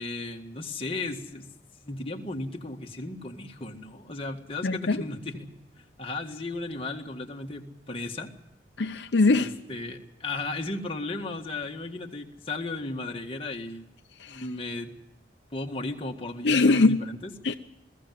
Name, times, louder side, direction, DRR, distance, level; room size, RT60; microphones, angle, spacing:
voice 1, 0.0-1.5 1.8-5.5 5.8-8.3 9.4-13.8 14.3-14.9 15.5-17.3, left 2 dB, 30° left, 2 dB, 1.8 m, -35 dB
voice 2, 4.6-5.0 8.8-9.5 14.2-14.4 16.4-17.0 17.4-17.5, left 3 dB, 65° left, 7 dB, 0.7 m, -22 dB
21.5 x 15.0 x 9.3 m, 0.90 s
head